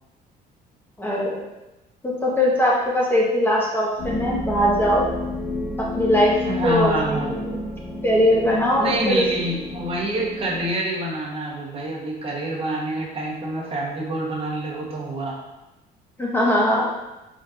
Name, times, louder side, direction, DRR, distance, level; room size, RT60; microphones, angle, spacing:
voice 1, 1.0-1.4 2.0-5.0 5.8-6.3 6.6-7.6 8.0-9.2 16.2-16.9, equal, 10° left, -4 dB, 1.0 m, -20 dB
sound 1, 4.0-10.7, left 2 dB, 75° left, 1.5 m, -31 dB
voice 2, 6.4-7.3 8.8-15.4, right 1 dB, 35° right, -3 dB, 1.1 m, -27 dB
5.0 x 4.1 x 2.5 m, 0.99 s
cardioid pair, 110°, 17 cm